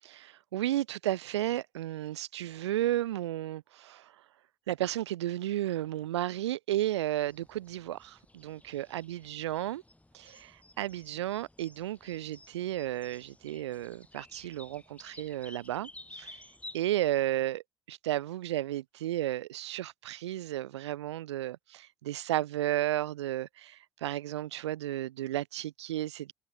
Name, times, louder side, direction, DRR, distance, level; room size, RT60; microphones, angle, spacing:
voice 1, 0.1-4.1 4.7-9.8 10.1-16.4 16.7-17.6 17.9-26.3, right 14 dB, 75° right, 0.6 m, -33 dB
sound 1, 7.3-16.8, left 1 dB, 10° left, 7.4 m, -53 dB
figure-of-eight pair, 55°, 15 cm